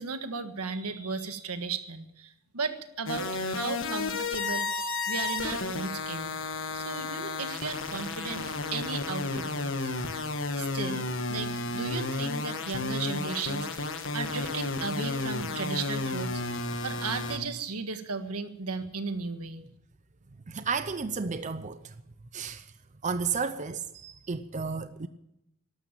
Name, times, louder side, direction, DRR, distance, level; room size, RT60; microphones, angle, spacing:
voice 1, 0.0-6.4 6.7-10.3 10.6-16.4 16.8-19.6, right 4 dB, 85° right, 1.6 m, -36 dB
sound 1, 3.1-17.4, left 3 dB, 60° left, 1.5 m, -32 dB
voice 2, 20.5-21.9 22.3-22.7 23.0-25.1, right 5 dB, 35° right, 0.6 m, -32 dB
13.0 x 12.0 x 9.0 m
head